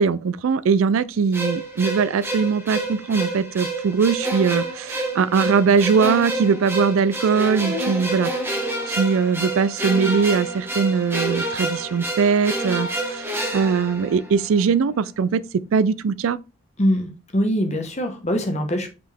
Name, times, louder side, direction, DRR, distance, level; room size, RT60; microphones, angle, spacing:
voice 1, 0.0-8.3 8.9-16.4, right 5 dB, 75° right, 0.4 m, -21 dB
sound 1, 1.3-14.6, right 1 dB, 10° right, 1.4 m, -28 dB
voice 2, 16.8-18.9, equal, 35° left, 1.3 m, -23 dB
5.8 x 4.7 x 3.4 m
head